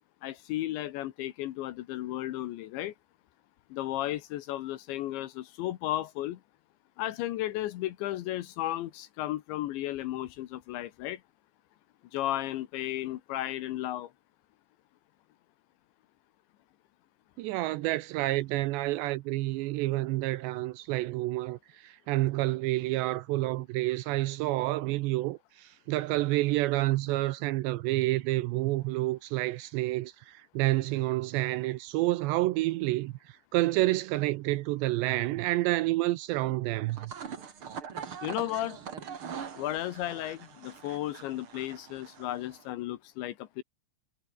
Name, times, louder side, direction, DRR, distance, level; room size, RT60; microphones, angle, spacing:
voice 1, 0.2-2.9 3.7-6.4 7.0-11.2 12.1-14.1 38.2-38.8 39.6-43.6, left 14 dB, 80° left, 3.4 m, -34 dB
voice 2, 17.4-33.1 33.5-37.1, right 18 dB, 80° right, 2.7 m, -29 dB
sound 1, 36.8-42.6, right 7 dB, 45° right, 1.7 m, -43 dB
omnidirectional pair, 5.4 m